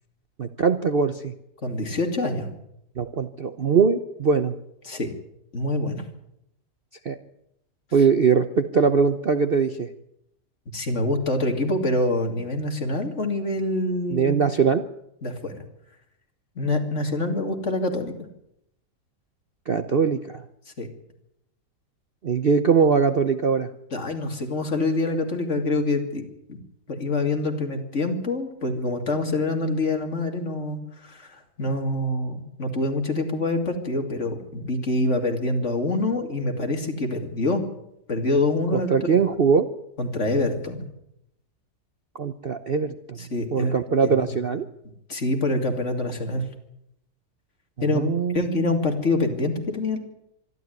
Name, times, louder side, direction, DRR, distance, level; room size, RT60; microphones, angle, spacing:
voice 1, 0.4-1.3 3.0-4.6 7.0-7.2 7.9-9.9 14.1-14.8 19.7-20.4 22.2-23.7 38.7-39.7 42.2-43.2 43.5-44.7 47.9-48.7, right 5 dB, 45° right, 9 dB, 0.9 m, -21 dB
voice 2, 1.6-2.5 4.8-5.1 5.5-6.0 10.7-14.4 15.2-15.6 16.6-18.1 20.8-20.9 23.9-26.2 26.5-26.6 26.9-37.6 38.1-39.0 40.0-40.8 43.2-43.7 44.0-44.4 45.1-46.5 47.8-48.1 48.3-50.0, left 2 dB, 45° left, 4 dB, 2.9 m, -26 dB
24.5 x 12.5 x 9.4 m, 0.80 s
omnidirectional pair, 1.8 m